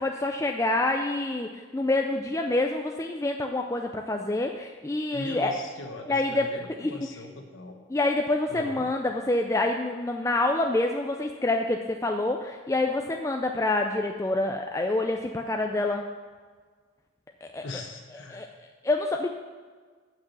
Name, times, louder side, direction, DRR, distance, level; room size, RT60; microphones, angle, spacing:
voice 1, 0.0-5.5 6.1-6.5 6.8-6.9 7.9-16.0 17.4-17.6 18.3-18.5 18.8-19.3, left 2 dB, 15° left, 3 dB, 0.3 m, -27 dB
voice 2, 5.1-7.8 8.5-8.9 17.6-18.4, left 2 dB, 70° left, 3 dB, 1.1 m, -40 dB
8.0 x 6.1 x 7.2 m, 1.5 s
head